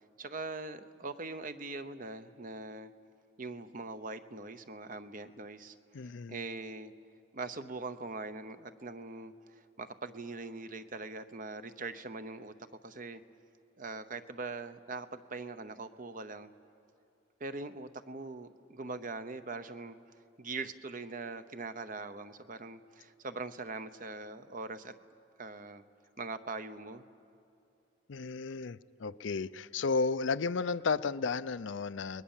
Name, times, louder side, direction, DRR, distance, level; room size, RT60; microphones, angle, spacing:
voice 1, 0.2-2.9 3.4-5.7 6.3-6.9 7.3-12.5 12.8-13.2 13.8-16.5 17.4-20.0 20.4-24.9 25.4-25.8 26.2-27.0, right 3 dB, 45° right, 11 dB, 0.9 m, -42 dB
voice 2, 5.9-6.4 28.1-32.2, left 4 dB, 75° left, 14 dB, 0.5 m, -33 dB
29.5 x 21.0 x 7.3 m, 2.7 s
head